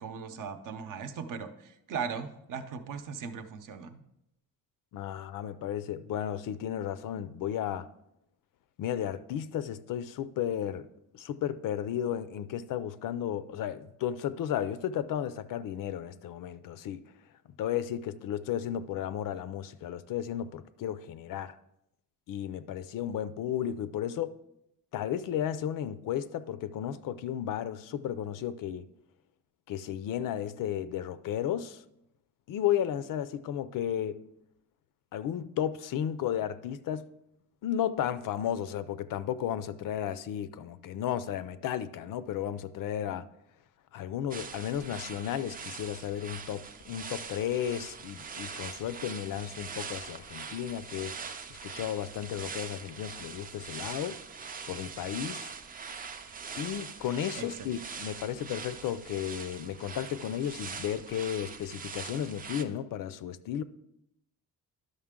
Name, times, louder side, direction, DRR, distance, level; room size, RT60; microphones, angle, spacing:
voice 1, 0.0-4.0 57.4-57.7, right 6 dB, 60° right, 0.7 m, -38 dB
voice 2, 4.9-7.9 8.8-10.9 11.1-17.1 17.6-21.6 22.3-24.3 24.9-28.9 29.7-31.8 32.5-34.2 35.1-37.1 37.6-43.3 43.9-51.2 51.6-54.2 54.7-55.5 56.6-63.6, left 10 dB, 65° left, 0.5 m, -34 dB
sound 1, 44.3-62.6, right 5 dB, 25° right, 0.4 m, -43 dB
11.0 x 6.5 x 3.7 m
cardioid pair, 180°, 36 cm